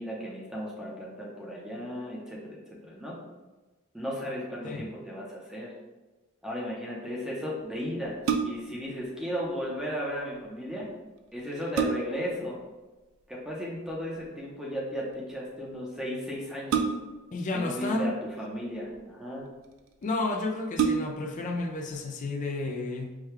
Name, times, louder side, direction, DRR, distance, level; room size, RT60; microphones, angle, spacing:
voice 1, 0.0-3.2 3.9-5.7 6.4-8.2 8.4-10.9 11.3-12.6 13.3-16.9 17.5-19.5, equal, 5° right, -5 dB, 0.7 m, -35 dB
sound 1, 8.0-8.8 10.8-10.9 11.4-12.3 13.9-14.2 16.7-17.3 18.3-19.0 19.7-19.8 20.1-20.2 20.7-21.4 21.9-22.0, right 6 dB, 65° right, 0.4 m, -29 dB
voice 2, 17.3-18.1 20.0-23.2, left 2 dB, 35° left, 2 dB, 0.4 m, -31 dB
4.7 x 2.3 x 3.3 m, 1.2 s
head